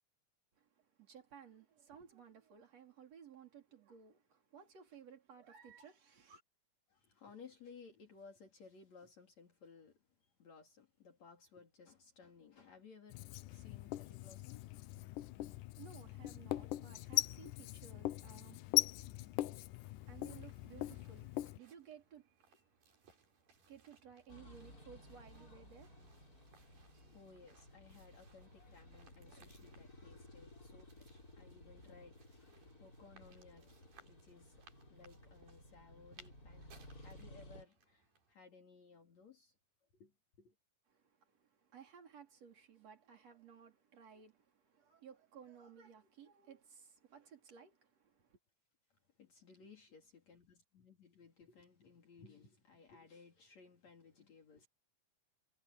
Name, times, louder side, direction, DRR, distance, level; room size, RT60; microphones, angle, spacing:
voice 1, 0.6-6.4 15.4-23.2 23.6-26.2 26.9-27.1 40.9-41.0 41.4-48.4, right 7 dB, 50° right, 4.9 m, -58 dB
voice 2, 6.9-10.0 10.4-15.2 27.0-39.5 39.9-40.5 49.2-54.7, left 5 dB, 55° left, 3.9 m, -60 dB
Writing, 13.1-21.6, left 16 dB, 75° left, 2.2 m, -40 dB
sound 1, 19.7-38.3, right 5 dB, 90° right, 6.6 m, -68 dB
sound 2, 24.3-37.6, left 1 dB, 25° left, 6.6 m, -58 dB
omnidirectional pair, 3.9 m